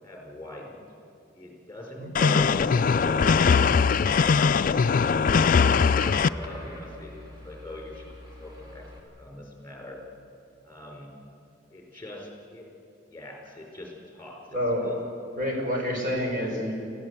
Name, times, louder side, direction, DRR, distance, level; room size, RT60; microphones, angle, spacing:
voice 1, 0.0-0.8 1.3-3.1 5.6-8.1 8.4-8.8 9.2-10.0 10.6-11.1 11.7-12.7 13.1-14.4 14.8-15.0 15.4-15.6, left 1 dB, 10° left, 0 dB, 4.8 m, -42 dB
voice 2, 2.0-2.4 14.5-14.9 15.4-16.7, equal, 45° right, 0 dB, 5.2 m, -28 dB
sound 1, 2.1-6.3, left 5 dB, 45° left, 0.4 m, -21 dB
sound 2, 2.8-9.0, left 1 dB, 20° right, 3.9 m, -44 dB
25.5 x 15.5 x 8.2 m, 2.7 s
head